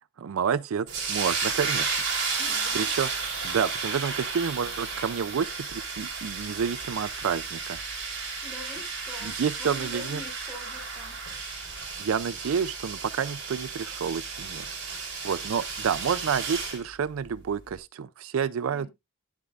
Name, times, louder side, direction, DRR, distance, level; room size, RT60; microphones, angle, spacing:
voice 1, 0.2-1.9 2.7-3.1 3.4-7.8 9.2-10.2 12.0-14.7 14.9-18.9, right 7 dB, 75° right, 0.4 m, -29 dB
sound 1, 0.9-16.8, right 5 dB, 60° right, 4.2 m, -33 dB
voice 2, 2.4-2.9 8.4-11.1 18.7-18.9, left 3 dB, 5° right, 3.1 m, -45 dB
11.0 x 8.2 x 2.4 m
head